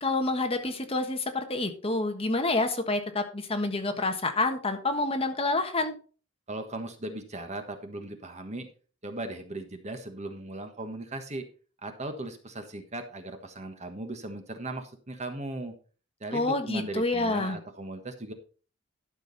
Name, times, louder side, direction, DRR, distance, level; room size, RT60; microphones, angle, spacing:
voice 1, 0.0-5.9 16.3-17.6, left 2 dB, 30° left, 5 dB, 1.4 m, -28 dB
voice 2, 6.5-8.7 9.0-11.5 11.8-15.7 16.2-18.3, right 2 dB, 35° right, 7 dB, 1.4 m, -38 dB
12.5 x 6.4 x 4.1 m, 0.38 s
head